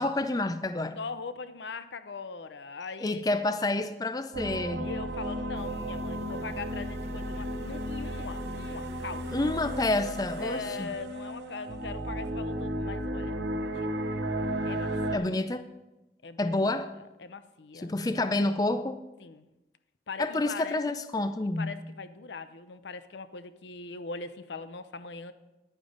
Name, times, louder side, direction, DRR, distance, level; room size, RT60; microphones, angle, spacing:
voice 1, 0.0-1.0 3.0-4.9 9.3-10.9 15.1-15.6 16.4-16.9 17.8-19.0 20.2-21.8, left 2 dB, 20° left, 10 dB, 0.4 m, -29 dB
voice 2, 1.0-3.7 4.8-9.2 10.4-14.0 14.6-15.3 16.2-17.9 19.2-19.5 20.1-20.8 21.6-25.3, left 4 dB, 85° left, 12 dB, 0.7 m, -41 dB
sound 1, 4.3-15.2, right 1 dB, 80° right, 1.0 m, -34 dB
sound 2, 5.5-10.9, equal, 40° right, 0.9 m, -49 dB
10.5 x 9.0 x 5.1 m, 1.0 s
head